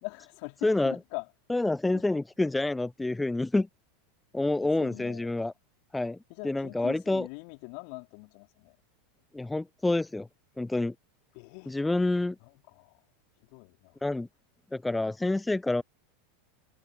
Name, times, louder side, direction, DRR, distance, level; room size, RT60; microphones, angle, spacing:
voice 1, 0.0-1.3 1.9-2.0 4.6-5.3 6.3-8.8 11.3-11.7 12.4-13.0 13.5-14.0, left 40 dB or more, 50° left, 3.5 m, -42 dB
voice 2, 0.6-1.0 1.5-3.7 4.3-5.5 5.9-6.2 6.4-7.3 9.3-10.3 10.6-10.9 11.7-12.4 14.0-14.3 14.7-15.8, left 2 dB, 10° left, 0.3 m, -28 dB
figure-of-eight pair, 85°, 0 cm